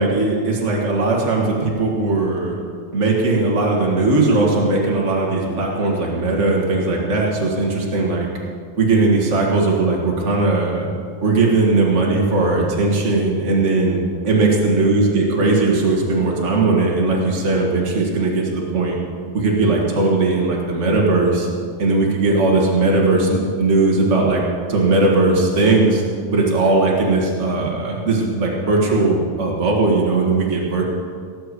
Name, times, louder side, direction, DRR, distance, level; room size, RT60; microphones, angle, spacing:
voice 1, 0.0-2.5 2.9-8.3 8.8-10.9 11.2-19.0 19.3-21.5 21.8-24.4 24.7-26.0 26.3-30.8, right 3 dB, 60° right, -2 dB, 0.7 m, -18 dB
18.0 x 6.9 x 8.2 m, 2.1 s
omnidirectional pair, 4.2 m